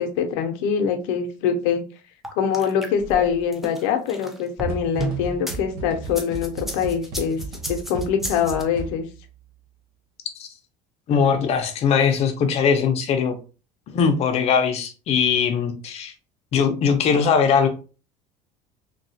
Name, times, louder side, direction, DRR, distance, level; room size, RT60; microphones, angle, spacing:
voice 1, 0.0-1.8 2.4-7.4 7.7-9.1, left 7 dB, 85° left, 6 dB, 0.6 m, -24 dB
sound 1, 2.2-5.6 6.0-8.6, right 1 dB, ahead, 0.4 m, -32 dB
sound 2, 4.7-9.3, right 3 dB, 65° right, 0.8 m, -35 dB
voice 2, 11.1-13.4 13.9-16.1 16.5-17.7, left 6 dB, 40° left, 6 dB, 0.6 m, -20 dB
3.1 x 2.3 x 2.6 m, 0.34 s
cardioid pair, 150°, 16 cm